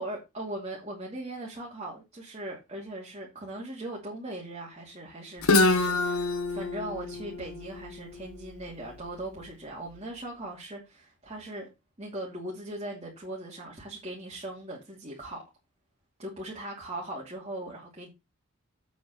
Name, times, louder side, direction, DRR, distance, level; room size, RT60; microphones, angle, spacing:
voice 1, 0.0-11.7 12.0-15.4 16.2-18.1, right 1 dB, 25° right, 2.6 m, -39 dB
Guitar, 5.4-9.2, left 2 dB, 85° left, 1.7 m, -27 dB
8.0 x 5.3 x 6.7 m
head